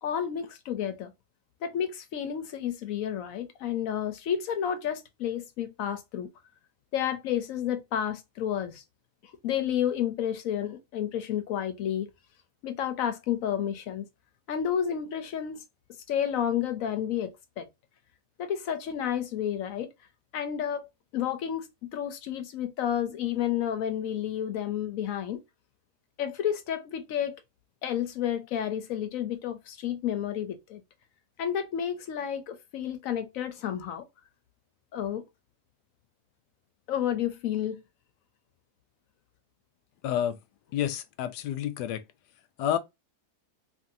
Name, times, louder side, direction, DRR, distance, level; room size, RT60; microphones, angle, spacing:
voice 1, 0.0-1.1 1.6-6.3 6.9-8.8 9.4-12.1 12.6-14.1 14.5-15.6 16.1-17.7 18.4-19.9 20.3-25.4 26.2-27.4 27.8-30.8 31.4-34.1 34.9-35.2 36.9-37.8, left 9 dB, 70° left, 0.9 m, -31 dB
voice 2, 40.0-40.4 40.7-42.0 42.6-42.8, left 10 dB, 90° left, 1.1 m, -29 dB
2.9 x 2.6 x 2.5 m
omnidirectional pair, 1.7 m